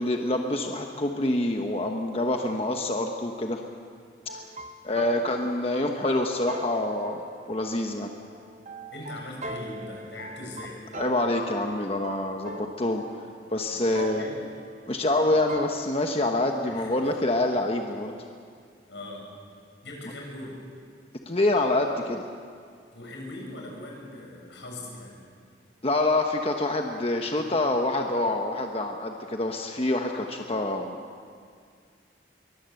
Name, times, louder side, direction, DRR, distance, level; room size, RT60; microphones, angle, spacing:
voice 1, 0.0-3.6 4.8-8.1 11.0-13.2 13.5-14.2 14.9-18.1 21.3-22.2 25.8-31.0, left 2 dB, 35° left, 3 dB, 1.2 m, -26 dB
sound 1, 4.3-16.1, right 2 dB, 40° right, 0.9 m, -41 dB
voice 2, 8.9-10.8 13.7-14.4 16.6-17.0 18.9-19.3 19.8-20.6 22.9-25.2 27.4-27.5, left 1 dB, 85° left, -1 dB, 7.0 m, -40 dB
23.0 x 20.5 x 7.9 m, 2.1 s
head